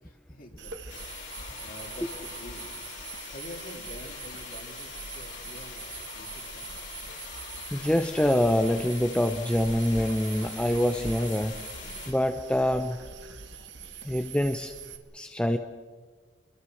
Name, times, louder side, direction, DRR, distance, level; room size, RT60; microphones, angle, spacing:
voice 1, 0.0-2.7 3.3-6.7, left 1 dB, 45° left, 2 dB, 3.4 m, -47 dB
sound 1, 0.6-15.0, right 6 dB, 65° right, 2.0 m, -43 dB
sound 2, 0.9-12.1, left 6 dB, 75° left, 5.5 m, -43 dB
voice 2, 7.7-11.6 12.1-13.0 14.0-14.7 15.1-15.6, equal, 5° left, 6 dB, 0.7 m, -25 dB
27.5 x 22.5 x 6.4 m, 1.5 s
head